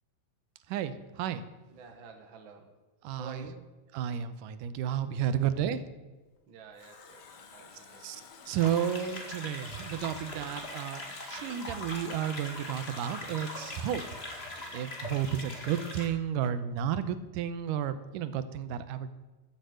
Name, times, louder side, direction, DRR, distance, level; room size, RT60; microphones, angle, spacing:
voice 1, 0.7-1.4 3.0-3.4 3.9-5.8 8.0-8.2 8.5-14.1 14.7-19.1, right 9 dB, 85° right, 12 dB, 2.4 m, -32 dB
voice 2, 1.7-2.7 3.1-3.7 5.4-5.6 6.5-8.1, right 6 dB, 50° right, 4 dB, 1.6 m, -49 dB
Water tap faucet, 6.3-15.9 16.2-16.3, left 6 dB, 60° left, 2.4 m, -51 dB
sound 1, 8.6-16.1, left 1 dB, 25° left, 1.6 m, -42 dB
14.0 x 7.9 x 7.8 m, 1.2 s
omnidirectional pair, 3.7 m